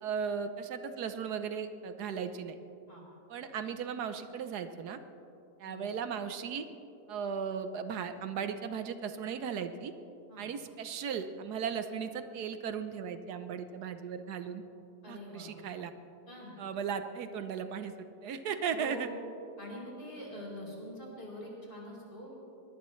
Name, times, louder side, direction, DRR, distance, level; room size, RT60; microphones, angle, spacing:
voice 1, 0.0-2.6 3.3-5.0 5.6-6.6 7.1-9.9 10.4-14.6 15.1-15.9 16.6-17.9 18.2-19.1, right 7 dB, 85° right, 9 dB, 1.4 m, -36 dB
voice 2, 15.0-15.5 16.3-16.6 18.7-19.2 19.6-22.3, left 1 dB, 35° left, -4 dB, 4.8 m, -44 dB
22.5 x 19.0 x 3.2 m, 2.8 s
omnidirectional pair, 1.7 m